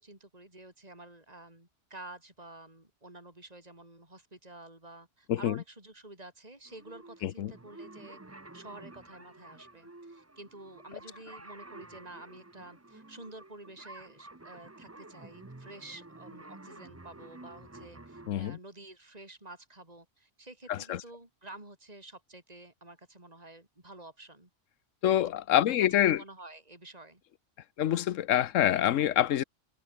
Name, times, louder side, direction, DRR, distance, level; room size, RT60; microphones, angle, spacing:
voice 1, 0.0-8.2 8.5-24.5 25.7-27.2, right 2 dB, 30° right, 5.1 m, -50 dB
sound 1, 6.7-18.3, right 2 dB, 15° right, 0.9 m, -51 dB
voice 2, 18.3-18.6 20.7-21.0 25.0-26.2 27.8-29.4, left 11 dB, 90° left, 1.1 m, -26 dB
omnidirectional pair, 1.3 m